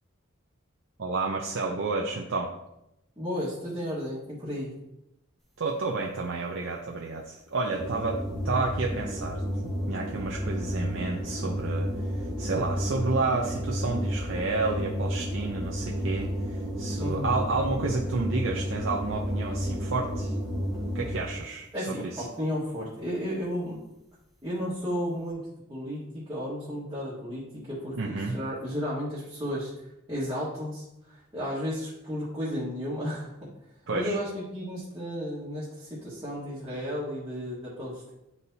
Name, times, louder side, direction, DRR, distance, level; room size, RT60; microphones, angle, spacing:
voice 1, 1.0-2.5 5.6-20.3 20.9-22.2 27.9-28.3 33.9-34.2, right 3 dB, 65° right, -1 dB, 0.6 m, -31 dB
voice 2, 3.2-4.7 17.0-17.3 21.7-23.8 24.4-25.4 25.7-26.0 26.3-29.7 30.1-33.3 33.9-38.1, equal, 20° right, -8 dB, 1.5 m, -33 dB
sound 1, 7.8-21.4, equal, ahead, 1.2 m, -31 dB
9.5 x 4.1 x 2.7 m, 0.87 s
head